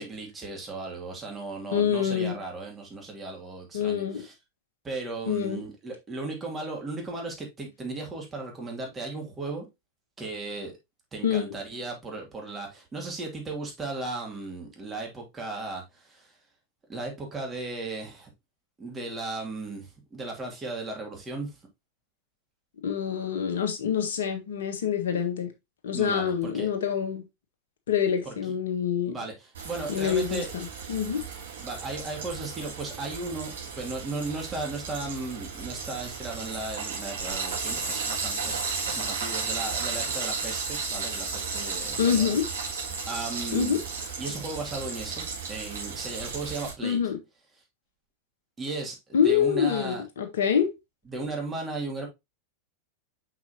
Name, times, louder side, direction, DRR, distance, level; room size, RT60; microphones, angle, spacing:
voice 1, 0.0-4.3 4.8-9.7 10.2-10.7 11.1-16.3 16.9-18.3 18.8-21.6 25.9-26.7 28.3-28.4 29.1-30.5 31.6-42.3 43.1-43.8 44.2-47.0 48.6-50.0 51.1-52.1, right 3 dB, 20° right, 2.5 m, -36 dB
voice 2, 1.7-2.4 3.7-4.2 5.2-5.6 11.2-11.5 22.8-25.5 25.8-27.2 27.9-29.2 29.9-31.2 42.0-42.5 43.5-43.8 46.8-47.2 49.1-50.7, left 8 dB, 60° left, 1.6 m, -26 dB
Frying (food), 29.5-46.7, right 4 dB, 65° right, 3.4 m, -34 dB
6.0 x 5.8 x 2.8 m
figure-of-eight pair, 90°, 0 cm